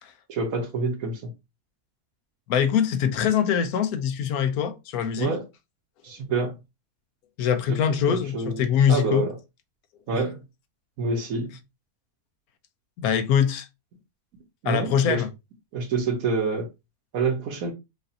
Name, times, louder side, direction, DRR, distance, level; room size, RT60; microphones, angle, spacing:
voice 1, 0.3-1.2 5.2-5.4 6.0-6.5 8.1-8.6 8.9-9.3 10.1-10.4 11.0-11.5 14.6-15.2 15.7-16.7 17.1-17.7, right 4 dB, 65° right, 1.4 m, -27 dB
voice 2, 2.5-5.3 7.4-9.3 10.1-10.2 13.0-13.7 14.6-15.3, left 8 dB, 75° left, 1.0 m, -23 dB
4.9 x 2.5 x 2.7 m
omnidirectional pair, 1.6 m